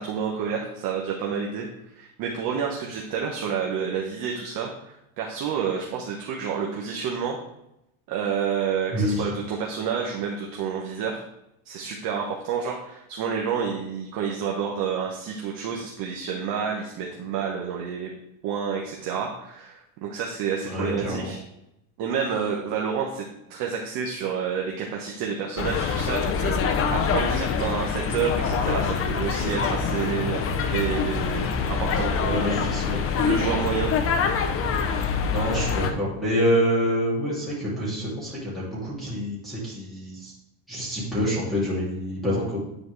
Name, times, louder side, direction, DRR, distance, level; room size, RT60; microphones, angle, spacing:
voice 1, 0.0-1.7 2.0-7.4 8.1-11.2 11.7-18.1 18.4-21.4 22.0-23.2 23.5-30.4 30.7-32.6 33.2-33.9, right 6 dB, 50° right, -1 dB, 1.1 m, -29 dB
voice 2, 8.9-9.3 20.7-21.3 32.3-33.0 33.5-33.7 34.9-40.3 40.7-42.6, equal, ahead, -9 dB, 2.5 m, -27 dB
sound 1, 25.6-35.9, left 5 dB, 30° left, 0.6 m, -25 dB
9.6 x 4.3 x 3.3 m, 0.84 s
supercardioid pair, 135°, 44 cm